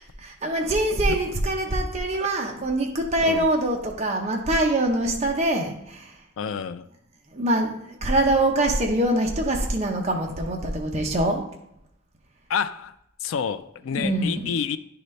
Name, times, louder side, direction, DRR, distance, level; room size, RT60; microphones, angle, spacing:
voice 1, 0.0-6.2 7.3-11.4 13.9-14.5, right 1 dB, 30° right, 1 dB, 0.8 m, -24 dB
voice 2, 6.4-6.9 12.5-12.9 13.2-14.8, left 7 dB, 70° left, 11 dB, 0.3 m, -28 dB
9.9 x 3.9 x 3.2 m, 0.80 s
head